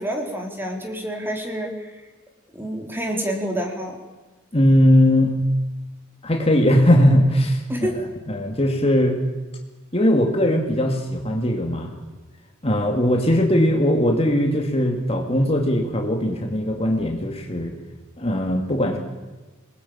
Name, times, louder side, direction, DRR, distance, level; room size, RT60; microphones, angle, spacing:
voice 1, 0.0-1.9 2.5-4.0 7.7-7.9, equal, 10° right, 2 dB, 3.9 m, -28 dB
voice 2, 4.5-5.3 6.2-7.6 8.0-9.2 9.9-12.0 12.6-17.7 18.2-19.0, left 1 dB, 30° left, 3 dB, 2.5 m, -19 dB
27.5 x 20.5 x 8.9 m, 1.2 s
head